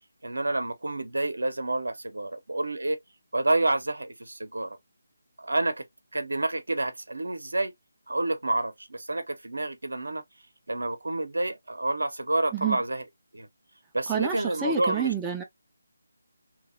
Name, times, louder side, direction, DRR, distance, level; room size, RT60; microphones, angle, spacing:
voice 1, 0.2-3.0 3.3-4.8 5.4-5.7 6.1-7.7 8.1-10.2 10.7-13.0 13.3-13.5 13.9-15.1, right 2 dB, 70° right, 0.7 m, -29 dB
voice 2, 14.1-15.4, right 7 dB, 10° right, 0.4 m, -28 dB
2.9 x 2.7 x 2.5 m
figure-of-eight pair, 155°, 0 cm